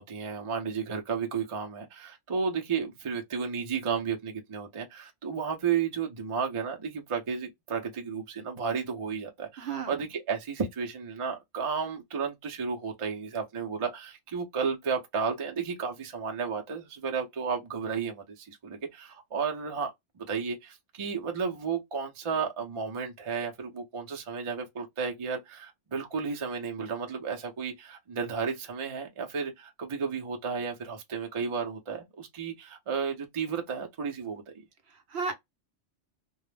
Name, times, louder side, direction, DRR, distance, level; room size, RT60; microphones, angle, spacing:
voice 1, 0.0-34.4, right 6 dB, 40° right, 0.5 m, -33 dB
voice 2, 9.6-10.1 34.9-35.3, right 5 dB, 70° right, 0.9 m, -34 dB
2.2 x 2.0 x 3.1 m
omnidirectional pair, 1.2 m